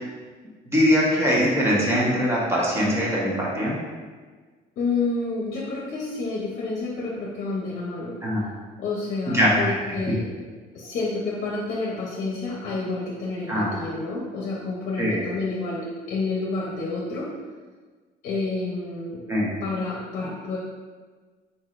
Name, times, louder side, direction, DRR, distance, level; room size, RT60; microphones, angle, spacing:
voice 1, 0.7-3.8 8.2-8.4 9.3-9.6 13.5-13.7 15.0-15.2 19.3-19.5, equal, 15° right, -5 dB, 1.0 m, -22 dB
voice 2, 4.8-8.2 8.8-10.3 10.7-17.3 18.2-19.2 19.6-20.6, left 3 dB, 55° left, -4 dB, 0.8 m, -29 dB
4.8 x 4.1 x 2.5 m, 1.4 s
cardioid pair, 155°, 17 cm